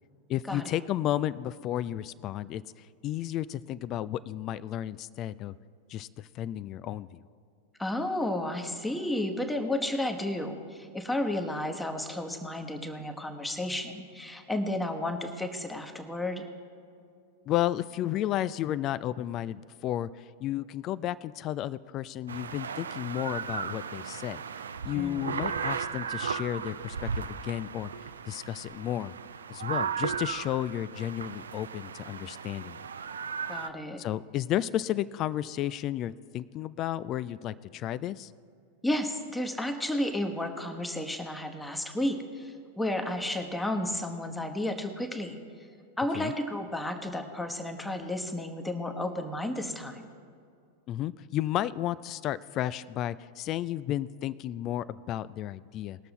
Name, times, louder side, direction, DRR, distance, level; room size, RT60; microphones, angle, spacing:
voice 1, 0.3-2.6 3.0-5.5 5.9-7.2 17.5-24.4 24.8-27.9 28.3-29.2 29.5-32.8 34.0-38.3 46.1-46.3 50.9-56.0, left 12 dB, 35° left, 18 dB, 0.3 m, -32 dB
voice 2, 7.8-16.4 24.9-25.4 33.5-34.0 38.8-45.4 46.0-50.1, left 1 dB, 5° left, 4 dB, 1.1 m, -32 dB
sound 1, 22.3-33.7, right 6 dB, 70° right, 0.4 m, -36 dB
20.0 x 6.8 x 3.9 m, 2.3 s
figure-of-eight pair, 90°, 0 cm